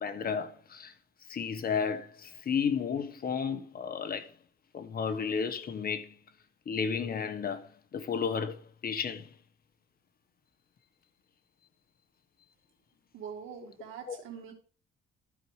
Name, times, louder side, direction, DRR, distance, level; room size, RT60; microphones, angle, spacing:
voice 1, 0.0-0.9 1.3-4.3 4.7-6.1 6.7-9.3 14.1-14.2, left 6 dB, 50° left, 1.3 m, -33 dB
voice 2, 13.1-14.5, right 7 dB, 85° right, 2.1 m, -43 dB
12.0 x 4.7 x 4.9 m
cardioid pair, 90°, 20 cm